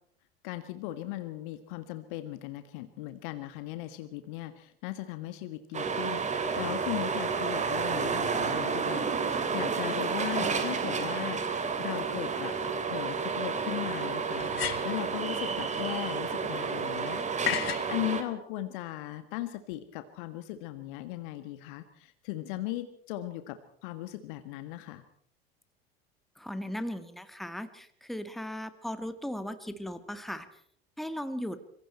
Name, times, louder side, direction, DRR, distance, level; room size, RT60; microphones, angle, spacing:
voice 1, 0.4-12.6 12.9-17.2 17.9-25.0, left 15 dB, 55° left, 10 dB, 1.7 m, -38 dB
sound 1, 5.7-18.2, right 5 dB, 25° right, 2.9 m, -31 dB
sound 2, 12.5-12.6 14.4-15.1 17.5-17.9, left 11 dB, 70° left, 1.1 m, -32 dB
voice 2, 26.4-30.5 31.0-31.6, equal, ahead, 10 dB, 1.8 m, -37 dB
26.0 x 24.0 x 4.4 m, 0.63 s
figure-of-eight pair, 75°, 31 cm